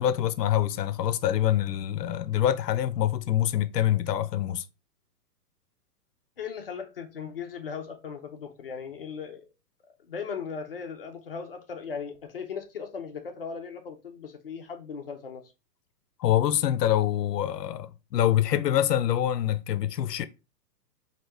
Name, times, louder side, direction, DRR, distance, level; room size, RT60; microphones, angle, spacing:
voice 1, 0.0-4.6 16.2-20.3, left 11 dB, 85° left, 0.6 m, -25 dB
voice 2, 6.4-9.4 10.0-15.4, left 6 dB, 40° left, 0.5 m, -38 dB
4.0 x 2.8 x 3.3 m
hypercardioid pair, 175°, 48 cm